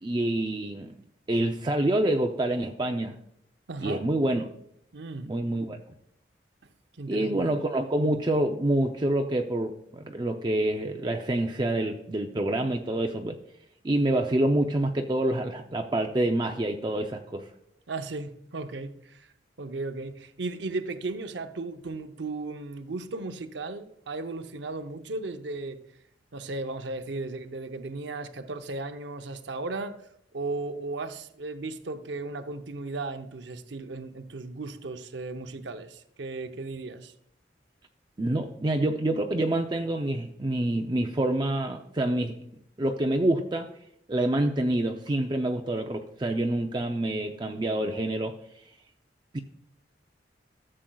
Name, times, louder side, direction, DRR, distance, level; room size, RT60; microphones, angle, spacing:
voice 1, 0.0-0.9 1.3-3.2 3.8-4.4 5.2-5.8 7.1-13.4 13.8-17.5 38.2-42.4 42.8-43.7 44.1-48.6 49.3-49.4, right 1 dB, 25° right, 4 dB, 0.5 m, -27 dB
voice 2, 3.7-4.0 4.9-5.3 7.0-7.5 17.9-19.3 19.6-25.8 26.3-30.0 30.3-37.1, right 3 dB, 85° right, 8 dB, 0.7 m, -36 dB
14.0 x 7.6 x 2.3 m, 0.73 s
head